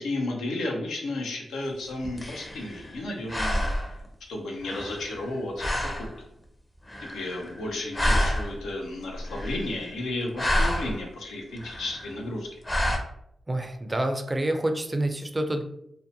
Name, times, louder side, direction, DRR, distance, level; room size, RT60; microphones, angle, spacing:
voice 1, 0.0-3.7 4.3-6.1 7.0-12.6, left 2 dB, 90° left, 0 dB, 0.5 m, -33 dB
sound 1, 1.8-3.0 3.3-4.1 4.6-5.3 5.6-6.1 6.9-7.7 7.9-8.7 9.2-9.9 10.2-11.0 11.6-12.1 12.7-13.0, equal, 25° left, 0.6 m, -28 dB
voice 2, 13.5-15.6, right 1 dB, 25° right, 6 dB, 0.4 m, -27 dB
2.6 x 2.1 x 2.6 m, 0.75 s
supercardioid pair, 50°, 0 cm